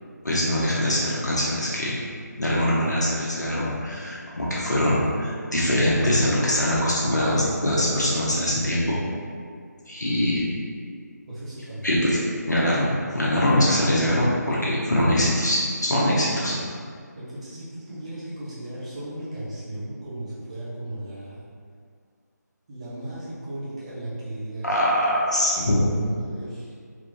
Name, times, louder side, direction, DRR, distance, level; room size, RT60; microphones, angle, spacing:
voice 1, 0.2-2.0 2.4-9.0 9.9-10.4 11.8-12.2 12.4-16.6 24.6-25.9, left 1 dB, 70° left, -6 dB, 0.8 m, -23 dB
voice 2, 11.3-12.0 17.2-21.4 22.7-24.7 26.0-26.7, right 1 dB, 20° right, -9 dB, 0.7 m, -36 dB
3.5 x 2.9 x 2.7 m, 2.1 s
figure-of-eight pair, 160°, 10 cm